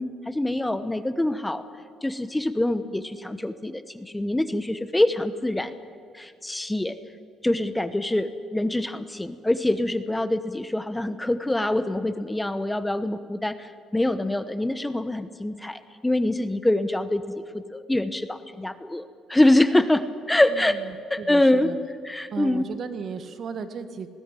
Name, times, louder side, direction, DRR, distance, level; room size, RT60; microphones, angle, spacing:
voice 1, 0.0-1.6 2.0-5.7 6.1-7.0 7.4-20.8 21.1-21.7 22.0-22.7, left 1 dB, 10° left, 12 dB, 1.0 m, -25 dB
voice 2, 20.5-20.9 21.2-21.8 22.3-24.1, right 6 dB, 55° right, 10 dB, 1.6 m, -35 dB
20.0 x 17.0 x 9.1 m, 2.2 s
cardioid pair, 85°, 0 cm